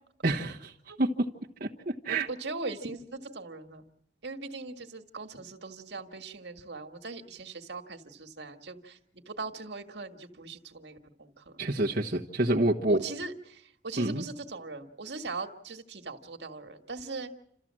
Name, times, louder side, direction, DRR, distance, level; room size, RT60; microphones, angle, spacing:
voice 1, 0.2-0.7 1.0-1.1 1.6-2.3 11.6-13.0 14.0-14.2, right 2 dB, 55° right, -3 dB, 1.2 m, -27 dB
voice 2, 2.1-3.8 4.2-9.0 9.3-11.5 12.9-17.3, right 3 dB, 80° right, 4 dB, 1.8 m, -40 dB
28.5 x 14.0 x 7.6 m, 0.72 s
head